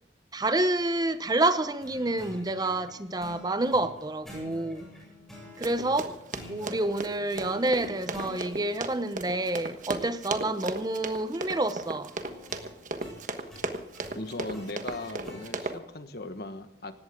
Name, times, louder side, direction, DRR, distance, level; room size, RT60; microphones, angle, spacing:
voice 1, 0.3-4.9 5.6-6.1 6.5-12.1, right 2 dB, 20° right, 0.8 m, -28 dB
sound 1, 1.8-8.4 12.1-15.5, left 1 dB, ahead, 7.1 m, -47 dB
Run, 5.6-15.8, right 2 dB, 45° right, 1.3 m, -36 dB
voice 2, 14.1-16.9, left 2 dB, 60° left, 1.4 m, -38 dB
19.0 x 16.5 x 3.7 m
head